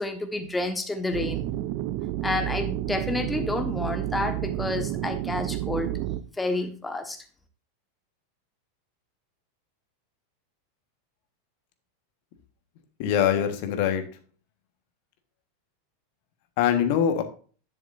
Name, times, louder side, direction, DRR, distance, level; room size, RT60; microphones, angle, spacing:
voice 1, 0.0-1.4 2.2-5.9 6.4-7.2, left 2 dB, 10° left, 6 dB, 1.4 m, -29 dB
sound 1, 1.1-6.2, right 13 dB, 50° right, 0.6 m, -30 dB
voice 2, 13.0-14.0 16.6-17.2, left 9 dB, 55° left, 7 dB, 1.4 m, -23 dB
11.0 x 7.1 x 2.6 m, 0.39 s
figure-of-eight pair, 90°, 0 cm